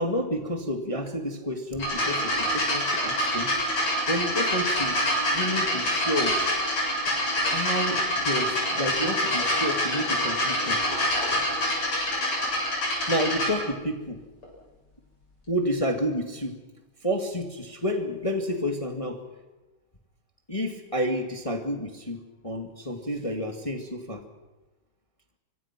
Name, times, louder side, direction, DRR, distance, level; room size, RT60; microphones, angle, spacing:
voice 1, 0.0-3.7 4.1-5.0 5.3-6.4 7.5-10.8 13.1-14.2 15.5-16.6 17.0-19.2 20.5-24.3, equal, 15° left, 4 dB, 1.7 m, -30 dB
sound 1, 1.8-13.5 14.4-14.5, left 1 dB, 50° left, 8.6 m, -26 dB
25.0 x 24.5 x 6.0 m, 1.1 s
omnidirectional pair, 3.3 m